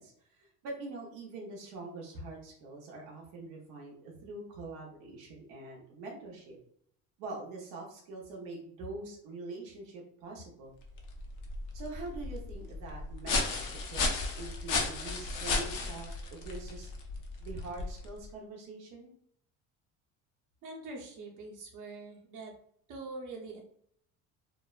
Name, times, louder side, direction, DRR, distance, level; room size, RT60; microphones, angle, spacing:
voice 1, 0.0-6.6 7.2-10.7 11.7-16.9 17.4-19.1, right 2 dB, 85° right, -1 dB, 0.7 m, -44 dB
sound 1, 10.8-18.3, left 3 dB, 55° left, 0.6 m, -35 dB
voice 2, 20.6-22.5 22.9-23.6, right 3 dB, 50° right, -1 dB, 0.8 m, -44 dB
2.6 x 2.1 x 2.3 m, 0.66 s
supercardioid pair, 90°, 38 cm